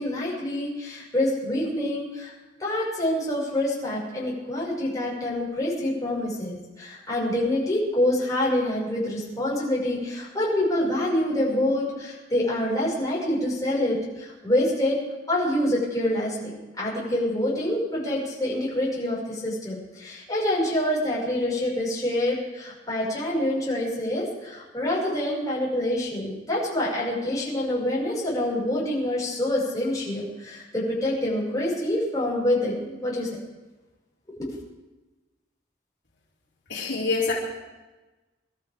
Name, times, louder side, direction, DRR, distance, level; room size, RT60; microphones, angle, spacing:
voice 1, 0.0-2.3 2.6-15.0 15.3-16.5 16.8-33.3, left 1 dB, 20° left, -6 dB, 6.2 m, -26 dB
voice 2, 36.7-37.3, left 3 dB, 65° left, -6 dB, 3.7 m, -25 dB
25.5 x 13.0 x 3.7 m, 1.2 s
head